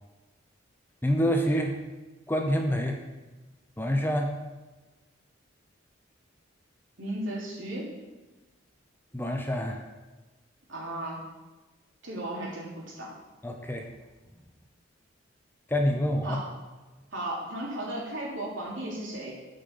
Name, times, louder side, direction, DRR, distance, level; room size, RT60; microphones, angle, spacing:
voice 1, 1.0-1.8 2.3-3.0 3.8-4.3 9.1-9.8 13.4-13.9 15.7-16.4, equal, 10° left, 3 dB, 0.8 m, -27 dB
voice 2, 7.0-7.9 10.7-11.2 12.0-13.1 16.2-16.5 17.1-19.4, right 1 dB, 75° right, -4 dB, 3.2 m, -35 dB
8.6 x 5.7 x 7.1 m, 1.2 s
head